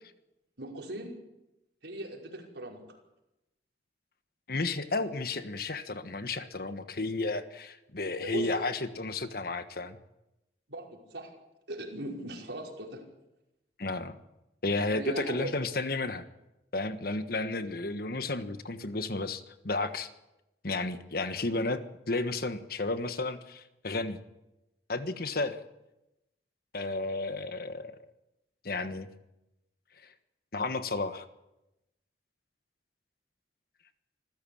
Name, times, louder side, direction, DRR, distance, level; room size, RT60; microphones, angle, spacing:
voice 1, 0.6-1.2 1.8-2.8 8.2-8.5 10.7-11.3 11.7-13.0 14.9-15.5, right 1 dB, 85° right, 0 dB, 5.4 m, -39 dB
voice 2, 4.5-10.0 13.8-14.2 14.6-16.3 16.7-20.1 20.6-21.8 22.1-24.2 24.9-25.6 26.7-28.0 28.6-29.1 30.5-31.3, left 2 dB, 55° left, 10 dB, 1.4 m, -32 dB
26.0 x 15.0 x 8.7 m, 0.94 s
head